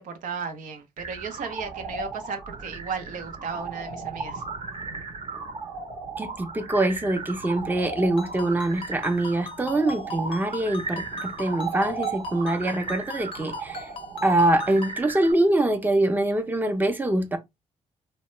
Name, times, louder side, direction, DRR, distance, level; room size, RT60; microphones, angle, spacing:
voice 1, 0.0-4.4, right 5 dB, 75° right, 0.6 m, -35 dB
sound 1, 1.0-15.3, right 4 dB, 45° right, 0.8 m, -35 dB
voice 2, 6.2-13.9 14.2-17.4, right 1 dB, 15° right, 0.6 m, -24 dB
Ringtone, 8.2-15.0, left 4 dB, 40° left, 0.5 m, -41 dB
2.8 x 2.2 x 3.0 m
cardioid pair, 75°, 13 cm